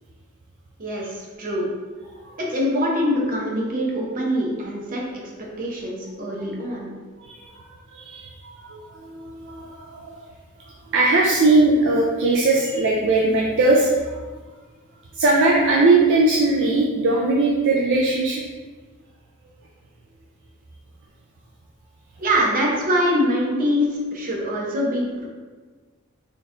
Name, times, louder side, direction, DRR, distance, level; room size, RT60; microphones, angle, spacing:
voice 1, 2.4-5.3 5.6-6.9 22.2-23.9 24.1-25.3, equal, 40° right, -3 dB, 0.8 m, -23 dB
voice 2, 7.2-10.2 10.7-14.2 15.1-18.4, right 2 dB, 60° right, -2 dB, 0.4 m, -20 dB
4.1 x 3.2 x 2.5 m, 1.4 s
head